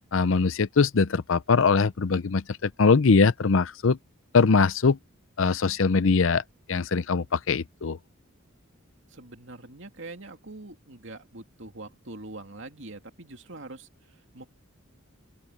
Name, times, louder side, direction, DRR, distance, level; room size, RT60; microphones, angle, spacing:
voice 1, 0.1-4.0 4.3-5.0 5.4-6.4 6.7-8.0, left 4 dB, 65° left, 0.6 m, -22 dB
voice 2, 9.1-14.4, right 2 dB, 60° right, 2.7 m, -43 dB
open air
head